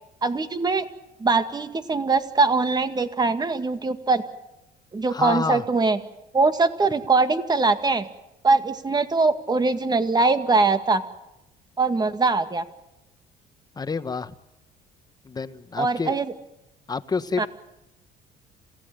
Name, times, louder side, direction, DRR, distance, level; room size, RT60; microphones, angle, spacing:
voice 1, 0.2-0.9 1.2-4.2 4.9-6.0 6.3-8.1 8.4-11.0 11.8-12.6 15.8-16.3 17.4-17.5, right 3 dB, 25° right, 9 dB, 2.0 m, -22 dB
voice 2, 5.1-5.6 13.8-14.3 15.2-16.1 16.9-17.5, left 4 dB, 25° left, 12 dB, 1.3 m, -28 dB
27.5 x 17.0 x 9.2 m, 0.92 s
cardioid pair, 110°, 17 cm